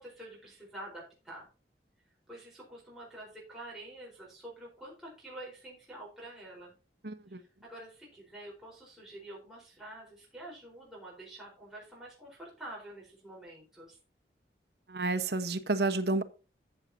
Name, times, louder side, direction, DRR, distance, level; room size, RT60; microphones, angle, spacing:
voice 1, 0.0-1.5 2.3-6.8 7.3-14.0, right 1 dB, ahead, 4.4 m, -47 dB
voice 2, 7.0-7.4 14.9-16.2, right 2 dB, 65° right, 1.2 m, -30 dB
14.5 x 7.3 x 2.8 m
head